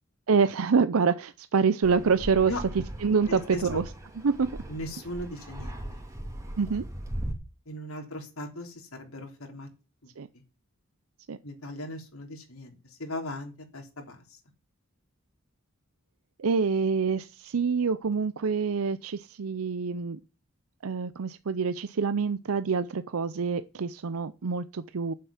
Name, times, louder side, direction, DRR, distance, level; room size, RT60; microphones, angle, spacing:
voice 1, 0.3-2.5 3.0-3.8 4.2-4.5 6.6-6.8 10.2-10.3 11.3-11.4 16.4-20.2 20.8-25.1, right 5 dB, 80° right, 0.6 m, -26 dB
Fixed-wing aircraft airplane, 1.8-7.3, right 1 dB, 15° right, 2.7 m, -39 dB
voice 2, 3.3-3.8 4.7-6.0 7.7-9.7 11.4-14.2, left 1 dB, 85° left, 3.4 m, -38 dB
9.3 x 7.7 x 7.1 m
head